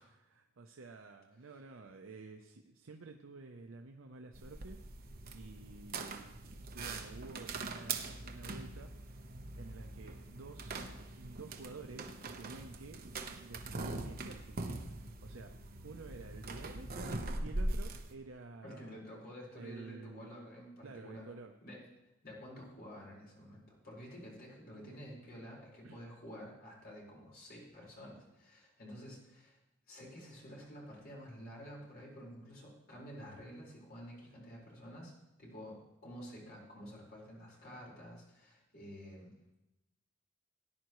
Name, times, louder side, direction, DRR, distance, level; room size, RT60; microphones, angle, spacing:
voice 1, 0.1-6.4 6.7-9.3 9.6-10.8 11.1-13.0 13.4-15.6 15.8-19.0 19.5-20.4 20.8-21.5 24.7-25.3 25.8-26.0, right 3 dB, 70° right, 4 dB, 0.7 m, -51 dB
sound 1, 4.3-18.1, right 2 dB, 45° right, 1.0 m, -42 dB
voice 2, 18.6-21.3 21.6-21.8 22.2-29.6 29.9-35.1 35.4-39.3, equal, 50° left, -4 dB, 4.6 m, -50 dB
18.5 x 10.5 x 3.1 m, 0.91 s
head